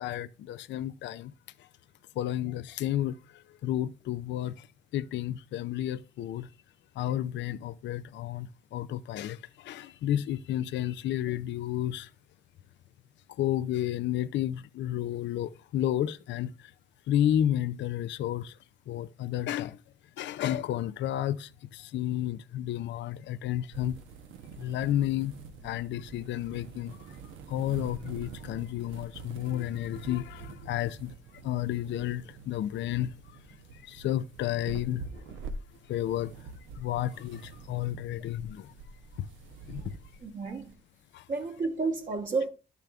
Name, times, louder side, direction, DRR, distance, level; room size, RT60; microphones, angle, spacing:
voice 1, 0.0-1.3 1.6-1.7 2.2-4.7 4.9-6.5 7.0-12.1 13.3-16.7 17.1-18.6 18.9-19.8 20.2-24.0 24.6-25.3 25.6-27.2 27.5-31.1 31.4-33.1 33.7-35.3 35.9-36.3 36.8-38.7 39.2-39.3 39.7-40.0 41.1-41.3, left 12 dB, 65° left, 0.4 m, -31 dB
sound 1, 23.7-40.7, right 4 dB, 85° right, 0.9 m, -46 dB
voice 2, 40.2-40.7 41.3-42.5, right 4 dB, 40° right, 1.1 m, -31 dB
11.5 x 6.9 x 2.3 m
cardioid pair, 90°, 20 cm